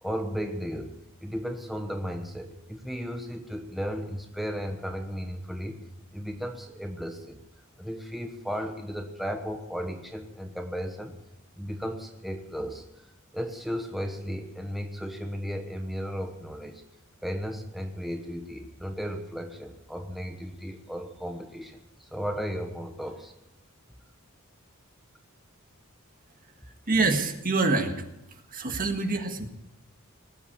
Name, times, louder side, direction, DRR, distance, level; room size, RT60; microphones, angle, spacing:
voice 1, 0.0-0.9 1.2-5.8 6.1-7.4 7.8-11.2 11.6-13.1 13.3-16.8 17.2-23.3 28.7-28.8, equal, ahead, 3 dB, 1.1 m, -35 dB
voice 2, 26.9-28.0 28.5-29.5, right 3 dB, 40° right, 5 dB, 1.7 m, -25 dB
20.0 x 8.6 x 8.6 m, 0.88 s
head